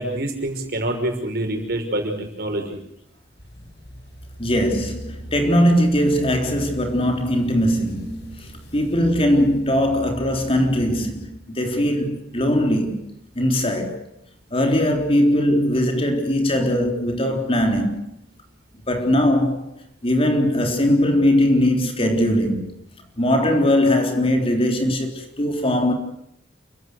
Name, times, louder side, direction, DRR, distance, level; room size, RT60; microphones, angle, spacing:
voice 1, 0.0-2.8, right 1 dB, 55° right, 5.8 m, -26 dB
sound 1, 3.4-11.2, right 1 dB, 65° left, 6.1 m, -39 dB
voice 2, 4.4-13.0 13.4-14.1 14.5-18.0 18.9-19.7 20.0-22.7 23.2-25.9, left 1 dB, 30° left, 3.7 m, -20 dB
29.5 x 16.5 x 8.1 m
head